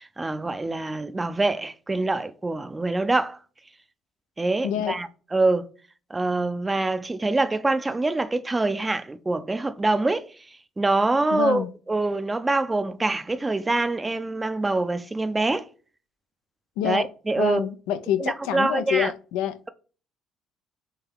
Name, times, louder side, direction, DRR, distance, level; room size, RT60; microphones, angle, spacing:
voice 1, 0.0-3.4 4.4-5.7 6.1-10.3 10.8-15.7 16.8-17.7 18.2-19.1, right 2 dB, 20° right, 0.5 m, -25 dB
voice 2, 4.6-5.0 11.3-11.7 16.8-17.1 17.4-19.7, left 10 dB, 75° left, 0.4 m, -27 dB
3.7 x 2.8 x 4.5 m
hypercardioid pair, 60°, 0 cm